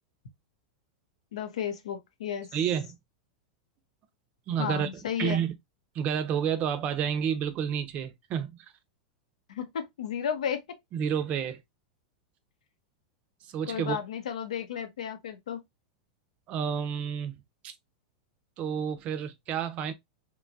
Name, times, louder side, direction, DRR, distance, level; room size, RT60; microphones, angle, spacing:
voice 1, 1.3-2.5 4.6-5.4 9.5-10.6 13.7-15.6, left 8 dB, 85° left, 0.7 m, -33 dB
voice 2, 2.5-3.0 4.5-5.5 5.9-8.6 10.9-11.6 13.5-14.0 16.5-17.3 17.6-17.7 18.6-19.9, right 8 dB, 40° right, 0.5 m, -30 dB
3.0 x 2.3 x 2.5 m
hypercardioid pair, 120°, 4 cm